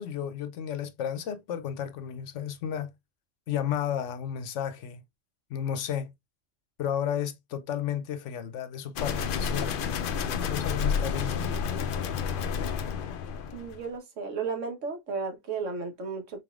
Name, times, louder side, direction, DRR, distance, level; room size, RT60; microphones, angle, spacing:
voice 1, 0.0-2.9 3.5-5.0 5.5-6.1 6.8-9.8 10.2-11.6, left 9 dB, 75° left, 0.9 m, -33 dB
sound 1, 9.0-13.9, left 6 dB, 60° left, 0.6 m, -30 dB
voice 2, 13.5-16.4, right 4 dB, 85° right, 1.4 m, -34 dB
4.0 x 3.4 x 2.3 m
omnidirectional pair, 1.3 m